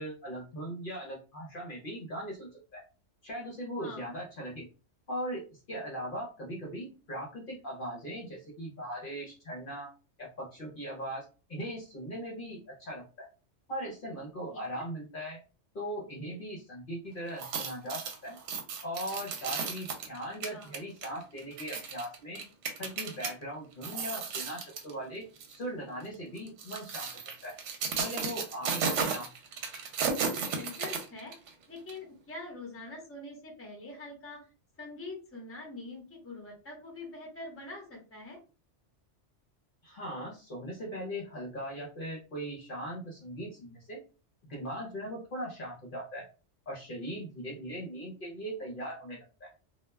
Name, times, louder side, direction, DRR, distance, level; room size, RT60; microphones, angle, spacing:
voice 1, 0.0-2.8 3.2-4.7 5.1-9.9 10.2-13.3 13.7-15.4 15.7-18.4 18.8-22.4 22.8-27.1 27.4-27.6 28.0-29.3 39.8-44.0 44.5-46.3 46.7-49.5, equal, 55° left, -2 dB, 0.8 m, -39 dB
voice 2, 14.5-14.8 20.5-20.7 30.5-31.3 31.7-34.5 34.8-38.4, left 2 dB, 15° left, 0 dB, 0.7 m, -44 dB
sound 1, 17.3-23.3 23.7-24.9 25.4-25.6 26.4-31.5 31.9-32.0, right 5 dB, 75° right, 0.9 m, -34 dB
2.2 x 2.1 x 3.2 m, 0.34 s
omnidirectional pair, 1.2 m